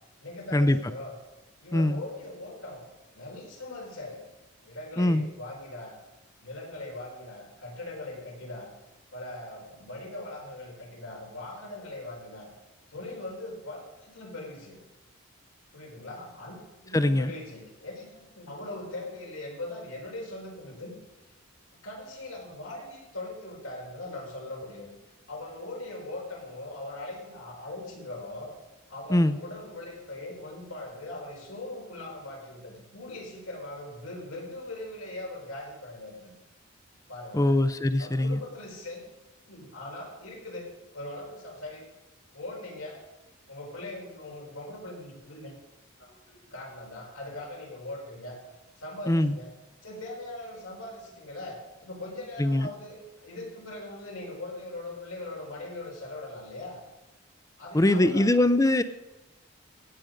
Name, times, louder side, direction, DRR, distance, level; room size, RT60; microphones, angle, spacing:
voice 1, 0.2-1.1 1.6-2.8 3.1-4.3 4.6-5.9 6.4-8.7 9.1-12.5 12.9-14.8 15.7-21.0 21.8-24.9 25.3-28.5 28.9-36.3 37.1-37.6 38.0-39.0 39.5-40.6 40.9-41.9 42.3-43.0 43.5-45.5 46.0-48.4 48.8-49.5 49.8-56.8 57.6-58.4, left 2 dB, 85° left, -1 dB, 4.4 m, -40 dB
voice 2, 1.7-2.0 5.0-5.3 16.9-17.3 29.1-29.4 37.3-38.4 49.1-49.4 52.4-52.7 57.7-58.8, left 1 dB, 15° left, 12 dB, 0.5 m, -22 dB
16.5 x 8.0 x 5.1 m, 1.0 s
head